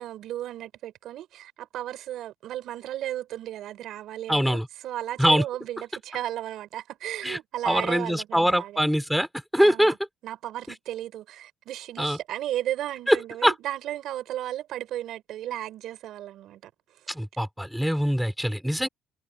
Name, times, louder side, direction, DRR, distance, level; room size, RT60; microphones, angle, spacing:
voice 1, 0.0-8.8 9.6-10.0 10.2-17.0 18.8-18.9, right 12 dB, 65° right, 6.0 m, -35 dB
voice 2, 4.3-4.7 5.2-5.4 7.2-7.4 7.6-9.3 9.5-10.0 12.0-12.2 13.1-13.2 13.4-13.5 17.1-18.9, equal, ahead, 5.6 m, -23 dB
cardioid pair, 140°, 0 cm